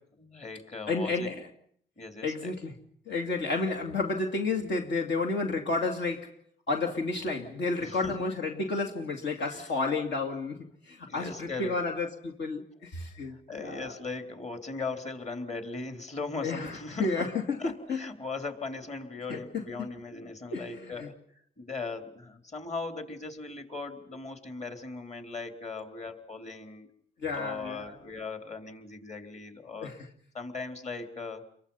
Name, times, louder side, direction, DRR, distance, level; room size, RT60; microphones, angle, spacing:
voice 1, 0.2-1.3 2.0-2.5 7.8-8.2 9.5-9.7 11.1-11.8 13.2-17.3 17.6-21.2 21.6-26.9 27.3-29.9 30.3-31.4, left 3 dB, 35° left, 3.8 m, -39 dB
voice 2, 0.9-1.4 2.2-2.7 3.1-6.3 6.7-13.9 16.4-18.0 19.3-19.9 20.5-21.1 27.2-27.9 29.8-30.0, left 3 dB, 65° left, 2.7 m, -31 dB
29.5 x 23.0 x 5.7 m
cardioid pair, 90°, 20 cm